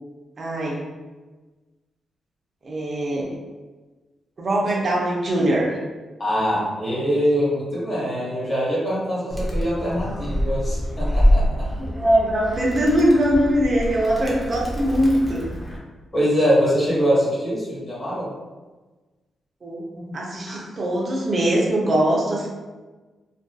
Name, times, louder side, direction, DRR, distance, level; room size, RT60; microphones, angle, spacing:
voice 1, 0.4-0.8 2.6-3.4 4.4-5.8 11.8-15.5 19.6-19.8 20.1-22.5, right 1 dB, 45° right, -3 dB, 0.5 m, -21 dB
voice 2, 6.2-11.7 14.3-14.4 16.1-18.3 20.0-20.2 20.5-20.6, equal, 35° left, -8 dB, 1.3 m, -23 dB
Animal, 9.3-15.8, equal, 10° left, 0.6 m, -25 dB
2.5 x 2.4 x 2.2 m, 1.2 s
cardioid pair, 90°, 0 cm